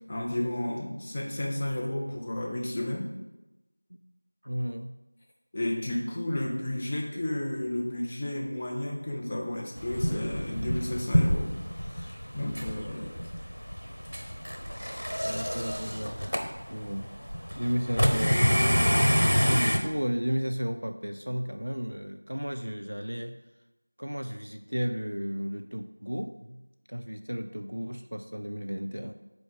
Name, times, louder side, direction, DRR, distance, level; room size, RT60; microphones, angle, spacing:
voice 1, 0.1-3.1 5.5-11.5 11.9-13.2, left 1 dB, 10° left, -1 dB, 0.4 m, -32 dB
voice 2, 4.4-5.0 15.2-16.2 16.7-17.1 17.6-18.6 19.4-23.4 24.0-26.6 26.9-29.1, equal, 65° right, 8 dB, 0.4 m, -33 dB
sound 1, 9.8-19.8, equal, 85° left, 1.1 m, -27 dB
5.2 x 4.5 x 5.9 m, 1.0 s
figure-of-eight pair, 175°, 0 cm